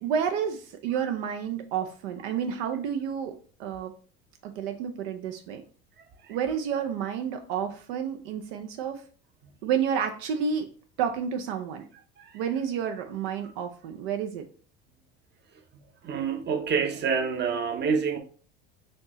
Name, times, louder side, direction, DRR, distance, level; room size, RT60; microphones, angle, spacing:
voice 1, 0.0-3.3 3.6-3.9 4.4-5.6 6.3-9.0 9.6-10.7 11.0-11.8 12.3-14.5, right 7 dB, 80° right, 0.6 m, -30 dB
voice 2, 16.0-18.2, right 6 dB, 35° right, 0.8 m, -27 dB
4.3 x 2.8 x 3.0 m
hypercardioid pair, 85°, 30 cm